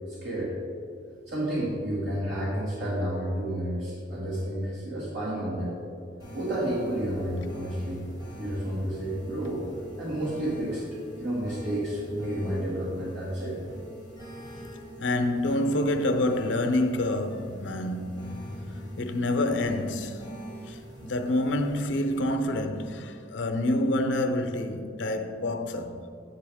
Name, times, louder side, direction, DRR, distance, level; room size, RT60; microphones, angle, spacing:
voice 1, 0.1-0.5 1.3-5.7 6.3-8.0 8.4-9.6 10.0-10.8 11.2-13.6, right 1 dB, 70° right, 2.1 m, -30 dB
sound 1, 6.2-22.2, right 1 dB, 20° right, 1.6 m, -44 dB
voice 2, 15.0-20.3 20.7-26.0, left 1 dB, 85° left, 0.6 m, -28 dB
8.0 x 7.7 x 3.5 m
head